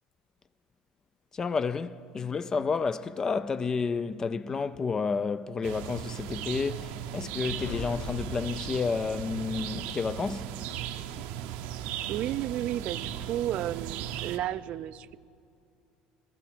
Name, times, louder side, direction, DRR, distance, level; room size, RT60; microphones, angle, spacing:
voice 1, 1.3-10.6, left 5 dB, 25° left, 0.3 m, -30 dB
sound 1, 5.6-14.4, right 10 dB, 80° right, 0.7 m, -37 dB
sound 2, 7.6-9.2, left 4 dB, 70° left, 1.3 m, -39 dB
voice 2, 12.1-15.2, right 12 dB, 55° right, 0.3 m, -32 dB
16.5 x 14.0 x 4.5 m
cardioid pair, 120°, 2 cm